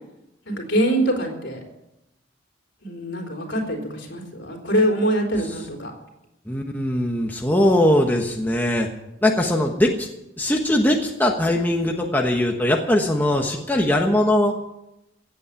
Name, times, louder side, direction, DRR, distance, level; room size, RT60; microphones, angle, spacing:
voice 1, 0.5-1.6 2.8-5.9, right 1 dB, 65° left, 2 dB, 4.0 m, -24 dB
voice 2, 6.5-8.9 9.2-10.1 10.4-14.5, left 1 dB, 10° left, 1 dB, 1.2 m, -20 dB
16.5 x 8.6 x 8.3 m, 0.88 s
head